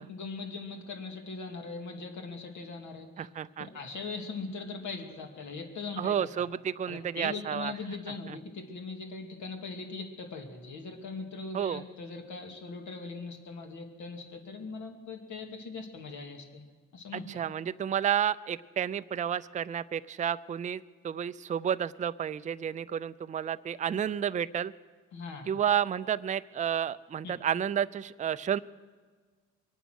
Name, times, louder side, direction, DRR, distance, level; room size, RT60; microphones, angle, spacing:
voice 1, 0.0-3.3 3.7-6.1 6.9-16.6 16.9-17.2 25.1-25.6 27.2-27.3, left 4 dB, 70° left, 3 dB, 2.3 m, -40 dB
voice 2, 3.2-3.7 6.0-7.7 8.3-8.4 11.5-11.8 17.1-24.7 25.5-28.6, right 9 dB, 25° right, 13 dB, 0.4 m, -31 dB
23.5 x 9.2 x 6.3 m, 1.5 s
cardioid pair, 90°, 30 cm